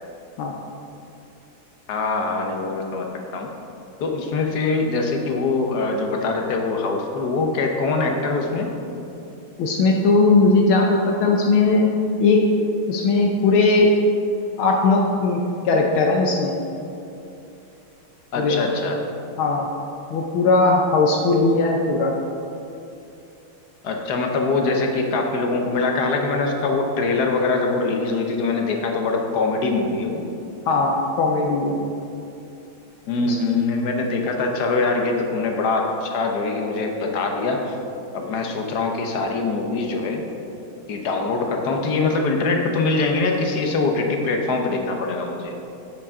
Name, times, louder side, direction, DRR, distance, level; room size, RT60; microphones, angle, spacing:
voice 1, 1.9-3.1 3.3-3.5 4.0-8.7 18.3-19.0 23.8-30.3 33.1-37.8 38.1-40.2 40.9-45.6, left 3 dB, 55° left, 2 dB, 1.3 m, -23 dB
voice 2, 9.6-11.9 12.2-12.5 12.9-13.9 14.6-15.4 15.6-16.5 18.4-18.6 19.4-19.7 20.1-22.1 30.7-31.8 33.3-33.4, left 3 dB, 75° left, 0 dB, 1.6 m, -18 dB
10.0 x 8.3 x 3.7 m, 2.8 s
omnidirectional pair, 2.3 m